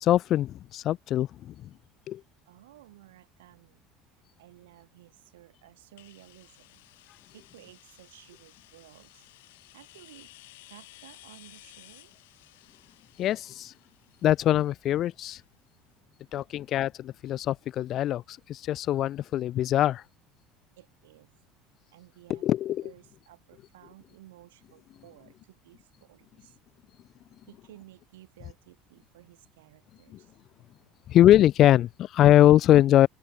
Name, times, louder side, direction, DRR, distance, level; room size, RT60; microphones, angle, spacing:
voice 1, 0.0-1.7 2.1-2.2 13.2-13.7 14.2-15.4 16.3-20.0 22.3-22.8 30.1-30.2 31.1-33.1, left 12 dB, 55° left, 0.4 m, -22 dB
voice 2, 2.5-3.9 4.1-9.3 9.7-10.3 10.7-12.1 20.8-21.3 21.9-22.4 22.8-26.6 27.5-30.3, right 16 dB, 80° right, 4.8 m, -55 dB
sound 1, 6.0-15.6, left 20 dB, 80° left, 7.6 m, -55 dB
hypercardioid pair, 75°, 0 cm